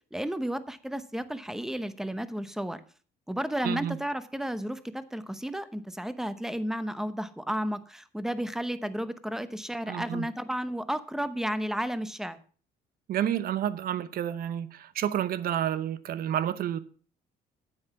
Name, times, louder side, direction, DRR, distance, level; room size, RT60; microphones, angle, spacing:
voice 1, 0.1-2.8 3.3-12.4, equal, 5° right, 0.9 m, -32 dB
voice 2, 3.6-4.0 9.9-10.3 13.1-16.8, right 10 dB, 60° right, 0.9 m, -30 dB
9.5 x 8.0 x 5.8 m
cardioid pair, 110°, 17 cm